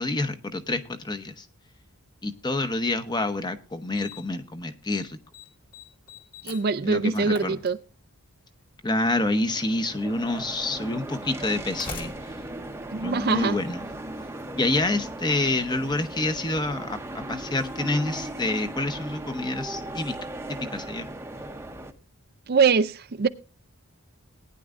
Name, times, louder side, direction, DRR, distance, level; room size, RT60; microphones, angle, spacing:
voice 1, 0.0-1.5 2.2-5.2 6.8-7.6 8.8-12.1 13.0-13.8 14.5-17.0 17.3-20.2 20.5-21.1, left 2 dB, 20° left, 9 dB, 0.8 m, -27 dB
Slam, 3.9-4.4 4.7-5.0 5.3-8.3 9.4-9.5 10.4-10.5 11.4-13.8, left 4 dB, 40° left, 1.9 m, -44 dB
voice 2, 6.4-7.8 12.9-13.6 22.5-23.3, right 5 dB, 45° right, 12 dB, 0.4 m, -23 dB
sound 1, 9.2-21.9, right 1 dB, 10° right, 0.7 m, -37 dB
19.0 x 10.0 x 2.5 m, 0.31 s
head